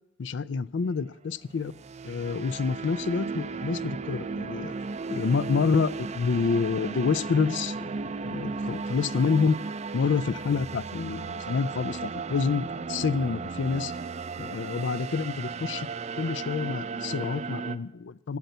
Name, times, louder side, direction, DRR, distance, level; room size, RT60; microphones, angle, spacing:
voice 1, 0.2-1.7 2.0-4.7 5.1-7.9 8.2-9.6 9.9-13.9 14.4-15.9 16.2-18.4, left 5 dB, 70° left, 18 dB, 0.4 m, -28 dB
sound 1, 1.5-17.8, right 4 dB, 35° right, 0.4 m, -35 dB
11.5 x 6.8 x 9.2 m, 0.92 s
head